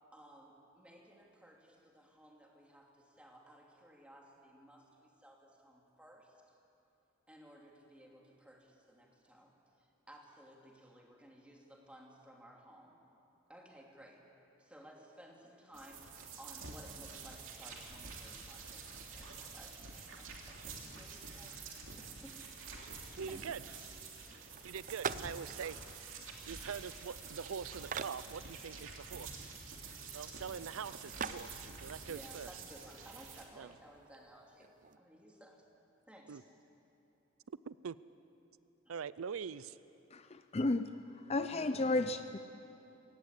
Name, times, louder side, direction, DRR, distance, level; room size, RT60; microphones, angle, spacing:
voice 1, 0.1-6.6 7.3-9.5 10.1-13.0 13.5-14.2 14.6-18.8 19.1-19.8 20.2-22.4 23.3-23.6 30.1-30.2 32.1-34.7 35.0-35.7 36.1-36.5 38.9-39.0 39.3-39.5, equal, 5° right, -1 dB, 2.8 m, -57 dB
sound 1, 15.7-33.4, right 4 dB, 70° right, 2.9 m, -48 dB
voice 2, 23.2-23.6 24.3-26.2 26.5-29.5 30.1-32.5 33.6-33.7 36.3-36.4 37.7-38.0 38.9-39.8, right 6 dB, 85° right, 17 dB, 0.5 m, -44 dB
sound 2, 24.5-35.0, right 6 dB, 40° right, 0.6 m, -47 dB
voice 3, 40.1-40.9 41.3-42.4, left 2 dB, 30° left, 10 dB, 0.5 m, -33 dB
23.0 x 18.0 x 8.4 m, 2.8 s
head